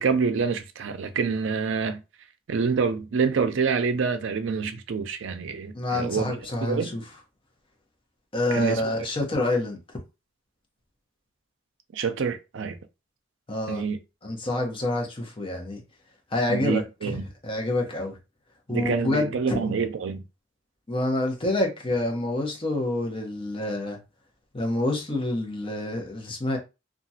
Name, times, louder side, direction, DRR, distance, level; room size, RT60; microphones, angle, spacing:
voice 1, 0.0-2.0 2.5-6.9 8.5-8.9 11.9-12.8 13.7-14.0 16.5-17.2 18.7-20.2, right 5 dB, 65° right, 0.4 m, -27 dB
voice 2, 5.7-7.0 8.3-9.8 13.5-13.8 14.2-15.8 16.3-17.2 17.4-18.2 18.7-19.6 20.9-24.0 24.5-26.6, left 2 dB, 25° left, 0.8 m, -27 dB
2.9 x 2.4 x 2.7 m
head